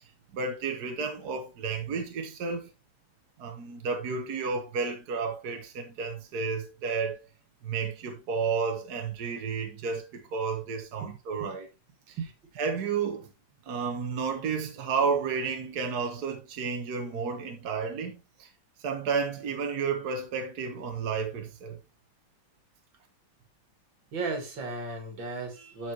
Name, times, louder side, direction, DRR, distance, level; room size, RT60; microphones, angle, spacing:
voice 1, 0.3-2.7 3.4-7.2 7.6-11.7 12.1-12.2 12.6-13.3 13.6-18.5 18.8-21.8, right 5 dB, 60° right, 1.6 m, -31 dB
voice 2, 24.1-25.9, right 3 dB, 80° right, 2.7 m, -35 dB
12.0 x 4.6 x 2.9 m
omnidirectional pair, 2.1 m